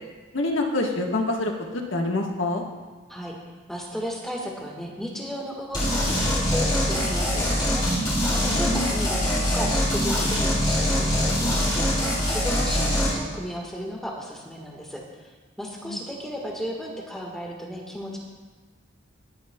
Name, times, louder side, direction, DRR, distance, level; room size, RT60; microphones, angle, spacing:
voice 1, 0.3-2.6 8.5-8.9 15.8-16.0, left 2 dB, 75° left, 1 dB, 1.3 m, -26 dB
voice 2, 3.7-7.8 8.3-11.9 12.3-15.3 15.6-18.2, equal, ahead, -2 dB, 1.5 m, -34 dB
sound 1, 5.7-13.1, equal, 20° left, 3.1 m, -23 dB
21.5 x 9.1 x 2.3 m, 1.3 s
head